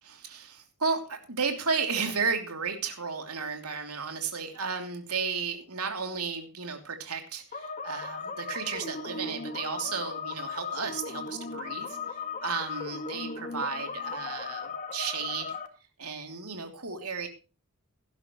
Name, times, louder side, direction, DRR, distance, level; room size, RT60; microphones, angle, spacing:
voice 1, 0.0-11.9 12.4-15.6 16.0-17.3, right 5 dB, 85° right, 5 dB, 3.0 m, -33 dB
sound 1, 7.5-15.7, left 5 dB, 35° left, 1.7 m, -37 dB
17.5 x 12.0 x 3.1 m, 0.31 s
head